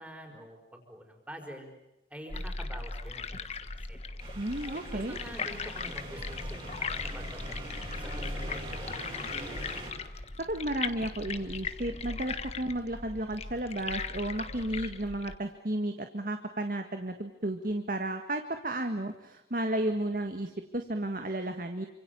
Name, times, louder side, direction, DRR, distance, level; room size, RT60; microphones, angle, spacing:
voice 1, 0.0-1.7 2.1-3.3 3.9-4.0 4.9-9.6, equal, 10° right, 3 dB, 5.4 m, -47 dB
sound 1, 2.3-15.4, left 4 dB, 35° left, 1.4 m, -38 dB
sound 2, 4.2-9.9, right 1 dB, 30° right, 6.7 m, -43 dB
voice 2, 4.4-5.2 10.5-21.9, right 1 dB, 50° right, 6 dB, 1.8 m, -33 dB
28.5 x 26.0 x 7.1 m, 0.92 s
head